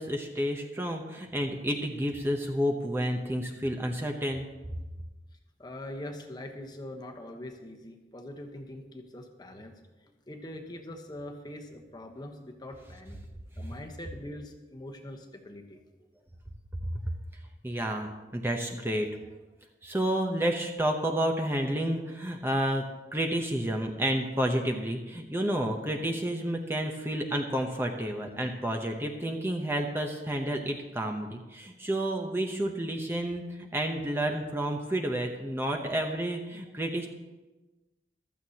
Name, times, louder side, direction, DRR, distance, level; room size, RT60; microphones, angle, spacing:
voice 1, 0.0-4.5 16.9-17.0 17.6-19.1 19.8-22.8 23.1-37.1, right 1 dB, 15° right, 2 dB, 0.8 m, -30 dB
voice 2, 5.6-9.7 10.3-13.2 13.6-15.8, left 1 dB, 25° left, 4 dB, 1.1 m, -43 dB
15.0 x 12.5 x 2.9 m, 1.1 s
head